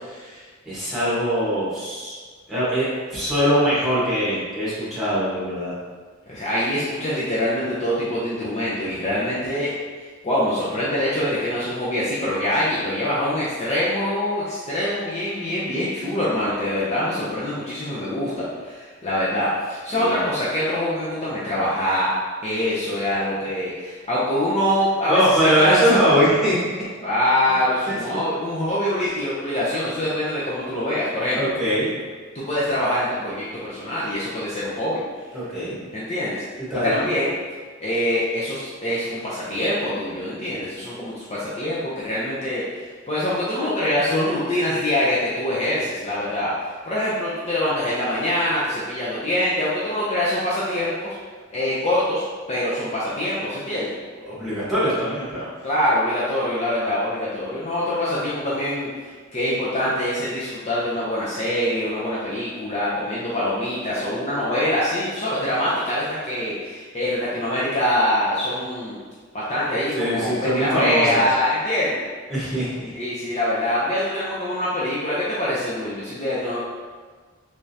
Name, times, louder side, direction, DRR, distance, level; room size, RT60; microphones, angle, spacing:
voice 1, 0.0-2.1 2.5-5.7 19.9-20.2 25.1-26.6 27.9-28.2 31.3-31.9 35.3-35.8 36.7-37.0 54.2-55.5 69.9-71.2 72.3-72.9, equal, ahead, -11 dB, 1.3 m, -22 dB
voice 2, 6.3-9.7 10.2-22.1 22.4-26.0 27.0-31.5 32.3-35.0 35.9-36.4 36.8-37.4 37.8-46.5 46.8-51.1 51.5-53.9 55.6-58.9 59.3-69.0 69.3-72.0 72.9-76.6, left 1 dB, 35° left, -8 dB, 0.6 m, -24 dB
3.5 x 3.2 x 2.7 m, 1.5 s
head